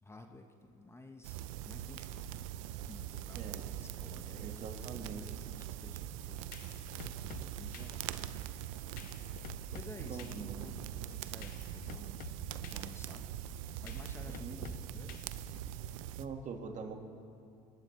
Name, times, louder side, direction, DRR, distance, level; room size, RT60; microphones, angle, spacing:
voice 1, 0.0-2.5 2.8-9.0 9.3-12.2 12.6-13.3 13.8-15.2, left 2 dB, 15° left, 5 dB, 1.1 m, -54 dB
sound 1, 1.2-16.3, right 11 dB, 85° right, 0.5 m, -42 dB
voice 2, 4.4-5.2 10.1-10.6 14.4-14.6 16.2-17.0, right 5 dB, 45° right, 4 dB, 1.7 m, -43 dB
sound 2, 6.2-15.9, left 13 dB, 55° left, 0.5 m, -52 dB
sound 3, 8.6-16.4, left 2 dB, 40° left, 3.9 m, -64 dB
27.5 x 12.0 x 3.2 m, 2.5 s
supercardioid pair, 80°, 17 cm